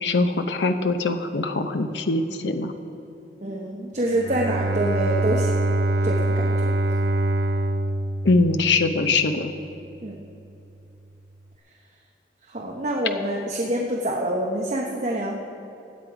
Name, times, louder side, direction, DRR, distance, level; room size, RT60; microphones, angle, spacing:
voice 1, 0.0-2.7 8.2-9.5, left 3 dB, 80° left, 7 dB, 0.7 m, -22 dB
voice 2, 3.4-5.6 6.0-6.7 10.0-10.2 12.5-15.4, right 1 dB, 40° right, -1 dB, 1.0 m, -26 dB
Bowed string instrument, 4.2-9.1, right 2 dB, 60° right, 0.5 m, -24 dB
16.5 x 9.5 x 4.9 m, 2.9 s
head